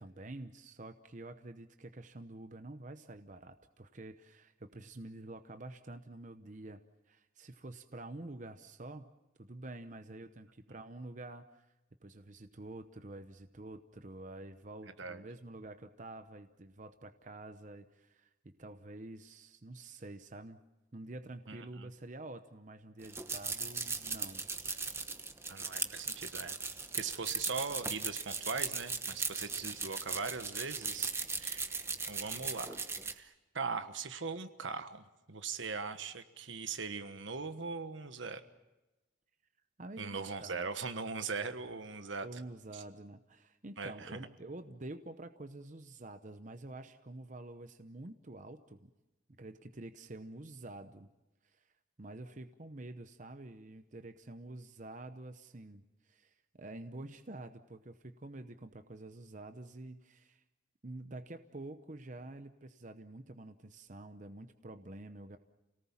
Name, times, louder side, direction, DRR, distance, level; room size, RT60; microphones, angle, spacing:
voice 1, 0.0-6.8 7.1-9.1 9.4-11.7 12.0-20.6 20.9-24.5 39.8-40.7 42.2-48.9 49.3-51.1 51.4-51.6 52.0-60.4 60.8-65.4, right 2 dB, 40° right, 9 dB, 0.8 m, -48 dB
voice 2, 21.5-21.9 25.5-26.6 26.9-31.1 31.4-31.7 32.1-32.8 33.1-38.4 40.0-42.4 42.7-42.8 43.8-44.2, right 4 dB, 75° right, 9 dB, 1.3 m, -40 dB
sound 1, 23.0-33.1, right 4 dB, 15° right, 1.1 m, -38 dB
29.5 x 18.5 x 7.3 m, 1.0 s
head